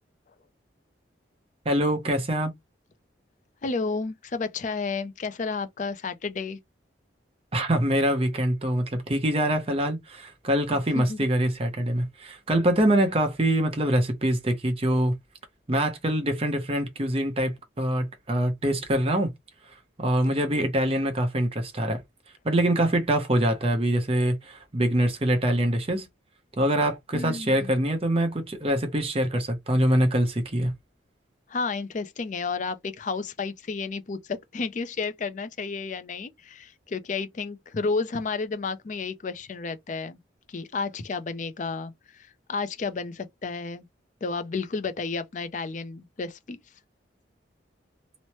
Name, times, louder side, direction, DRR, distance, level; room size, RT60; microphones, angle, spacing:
voice 1, 1.6-2.5 7.5-15.2 15.7-19.3 20.0-22.0 22.4-26.1 26.6-30.7, right 1 dB, 30° right, 0.7 m, -24 dB
voice 2, 3.6-6.6 10.7-11.2 27.1-27.7 31.5-40.2 40.5-43.8 44.2-46.6, left 4 dB, 40° left, 0.4 m, -32 dB
3.1 x 2.1 x 2.8 m
head